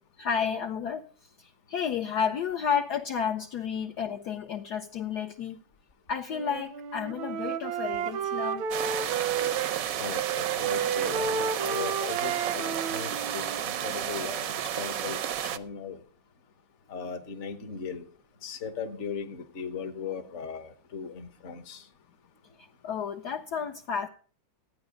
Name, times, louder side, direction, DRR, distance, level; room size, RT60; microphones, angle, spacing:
voice 1, 0.2-1.0 1.4-5.6 6.1-8.7 22.8-24.1, left 7 dB, 65° left, 4 dB, 1.2 m, -31 dB
Wind instrument woodwind instrument, 6.3-9.8 10.1-14.1, right 7 dB, 85° right, 1.5 m, -32 dB
sound 1, 8.7-15.6, right 9 dB, 65° right, 0.9 m, -32 dB
voice 2, 10.0-13.4 13.8-15.2 15.5-16.0 16.9-18.0 18.4-21.8, left 6 dB, 45° left, 9 dB, 1.3 m, -38 dB
14.0 x 9.4 x 5.1 m, 0.42 s
omnidirectional pair, 2.1 m